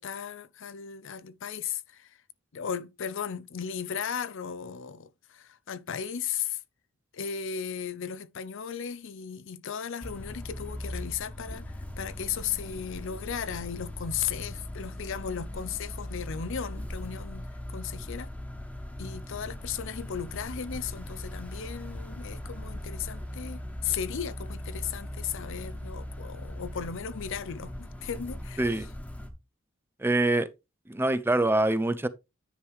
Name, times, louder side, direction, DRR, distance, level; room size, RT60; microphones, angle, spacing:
voice 1, 0.0-2.2 2.5-6.6 7.1-18.3 19.0-28.9, left 7 dB, 65° left, 0.6 m, -36 dB
sound 1, 10.0-29.3, left 1 dB, 5° left, 1.4 m, -39 dB
voice 2, 30.0-30.5 30.9-32.1, right 2 dB, 10° right, 0.5 m, -25 dB
9.9 x 4.8 x 3.5 m
head